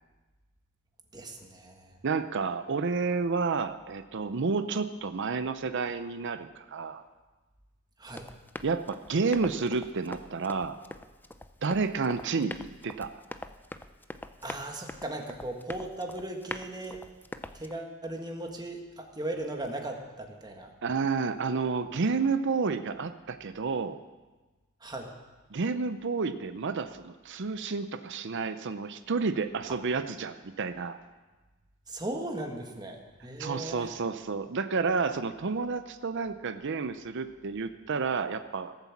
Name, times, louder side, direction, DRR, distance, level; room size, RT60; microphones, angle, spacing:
voice 1, 1.1-2.0 8.0-8.3 14.4-17.0 17.5-20.7 24.8-25.1 29.7-29.8 31.9-33.9, right 1 dB, 20° right, 3 dB, 1.6 m, -37 dB
voice 2, 2.0-7.0 8.6-10.8 11.6-13.1 20.8-24.0 25.5-31.0 33.4-38.7, right 4 dB, 60° right, 10 dB, 0.6 m, -30 dB
Run, 8.1-17.7, left 2 dB, 10° left, 0.5 m, -44 dB
17.5 x 8.0 x 7.3 m, 1.2 s
head